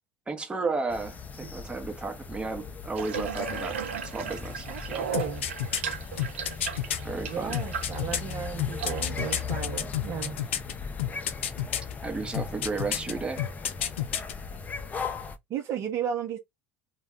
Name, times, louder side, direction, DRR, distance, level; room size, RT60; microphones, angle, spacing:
voice 1, 0.3-5.1 7.0-7.6 12.0-13.4, right 3 dB, 15° right, 0.8 m, -33 dB
sound 1, 0.9-15.4, left 5 dB, 25° left, 0.5 m, -38 dB
Water tap faucet / Bathtub (filling or washing), 3.0-9.4, right 7 dB, 90° right, 0.4 m, -36 dB
voice 2, 4.7-5.5 7.2-10.4 13.1-13.2 15.5-16.4, right 8 dB, 50° right, 0.7 m, -34 dB
sound 2, 5.1-7.0 7.5-10.7 11.0-11.9 12.3-13.1 13.4-14.3 14.6-14.7, left 10 dB, 85° left, 0.4 m, -29 dB
2.2 x 2.2 x 3.6 m
hypercardioid pair, 80°, 6 cm